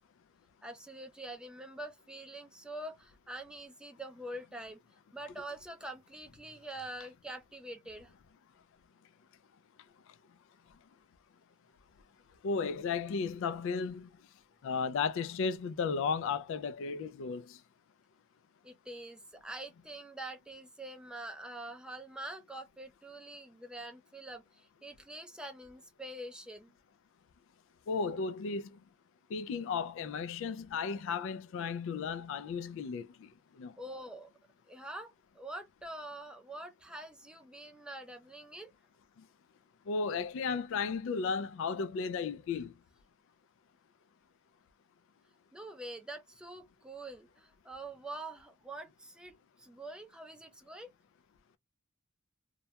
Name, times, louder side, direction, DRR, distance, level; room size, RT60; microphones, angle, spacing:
voice 1, 0.6-4.8 5.1-8.1 18.6-26.7 33.8-34.3 34.7-38.7 45.5-50.9, right 1 dB, 5° right, 0.4 m, -45 dB
voice 2, 12.4-14.1 14.6-17.6 27.9-28.8 29.3-33.3 33.6-33.8 39.9-42.7, left 5 dB, 65° left, 0.3 m, -34 dB
2.2 x 2.2 x 2.7 m
head